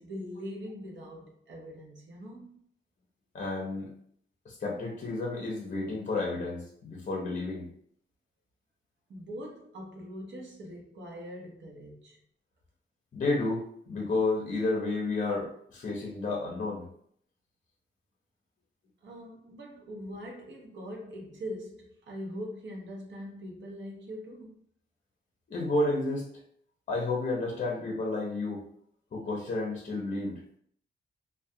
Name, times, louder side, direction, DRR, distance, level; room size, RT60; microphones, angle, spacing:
voice 1, 0.0-2.6 9.1-12.2 19.0-24.6, equal, 65° right, 0.7 m, -42 dB
voice 2, 3.3-3.9 4.4-7.7 13.1-16.8 25.5-26.3 26.9-28.6 29.1-30.4, left 2 dB, 40° left, 0.6 m, -31 dB
2.2 x 2.2 x 2.7 m
wide cardioid pair, 160°, 20 cm